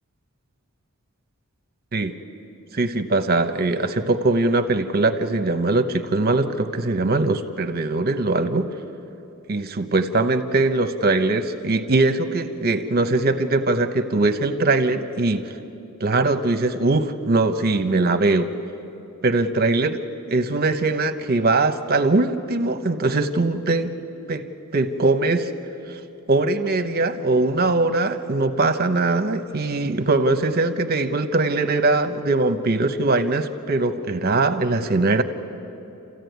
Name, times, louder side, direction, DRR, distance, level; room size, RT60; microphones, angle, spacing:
voice 1, 2.8-8.7 9.5-15.6 16.0-18.5 19.2-20.0 20.3-23.9 24.3-24.4 24.7-25.5 25.9-26.0 26.3-35.2, right 2 dB, 45° right, 8 dB, 1.0 m, -21 dB
29.0 x 14.5 x 9.4 m, 2.9 s
head